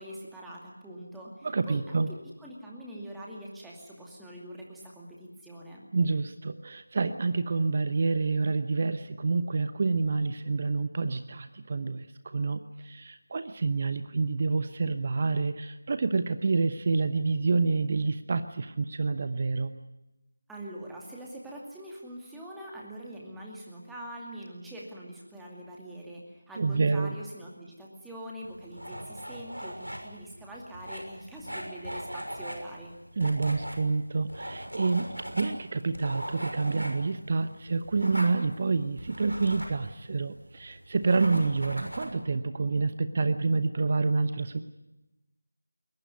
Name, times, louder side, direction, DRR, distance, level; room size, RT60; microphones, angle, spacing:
voice 1, 0.0-2.0 2.4-5.9 20.5-32.9, right 1 dB, ahead, -4 dB, 2.4 m, -43 dB
voice 2, 1.4-2.1 5.9-19.7 26.6-27.1 33.2-44.6, right 4 dB, 30° right, 11 dB, 0.9 m, -28 dB
sound 1, 28.4-42.1, equal, 80° right, 6.3 m, -40 dB
21.5 x 20.5 x 9.6 m, 0.99 s
figure-of-eight pair, 165°, 0 cm